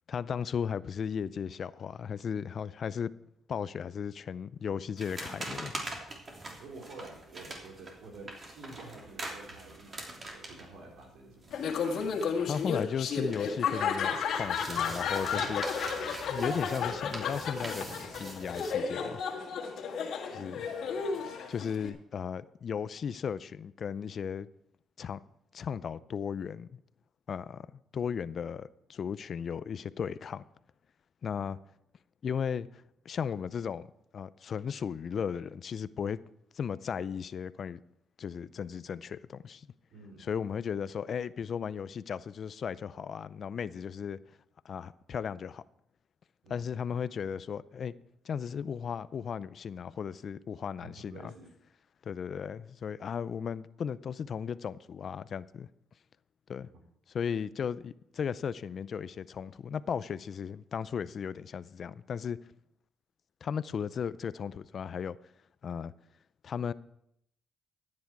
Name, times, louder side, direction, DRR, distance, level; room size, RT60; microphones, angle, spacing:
voice 1, 0.1-3.1 3.5-6.0 12.5-15.6 16.3-17.9 18.2-19.2 20.3-20.6 21.5-24.5 25.0-25.2 25.5-26.8 27.3-30.4 31.2-31.6 32.2-36.2 36.5-37.8 38.2-39.7 40.2-44.2 44.6-45.6 46.5-47.9 48.2-51.3 52.0-55.7 56.5-56.7 57.1-62.4 63.4-65.2 65.6-65.9 66.4-66.7, left 7 dB, 55° left, 0.5 m, -36 dB
sound 1, 5.0-13.7 14.0-18.7, right 2 dB, 35° right, 3.1 m, -43 dB
voice 2, 6.6-11.8 20.4-21.4 39.9-40.4 44.1-44.2 46.4-46.7 50.8-51.5, right 3 dB, 85° right, 4.3 m, -50 dB
Laughter, 11.5-21.9, left 6 dB, 70° left, 1.9 m, -33 dB
14.5 x 9.7 x 4.7 m
cardioid pair, 90°, 0 cm